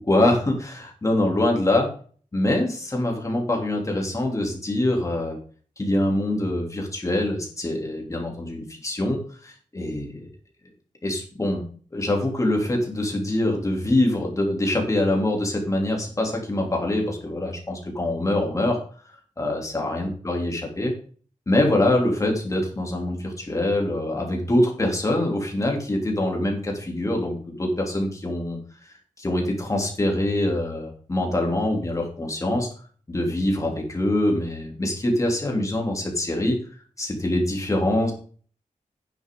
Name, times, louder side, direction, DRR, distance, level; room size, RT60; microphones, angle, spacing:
voice 1, 0.0-1.9 2.3-5.4 5.8-10.2 11.0-11.6 11.9-18.8 19.4-20.9 21.5-32.7 33.1-36.6 37.0-38.1, left 1 dB, 25° left, 1 dB, 3.0 m, -24 dB
10.5 x 9.9 x 3.8 m, 0.43 s
wide cardioid pair, 175°, 13 cm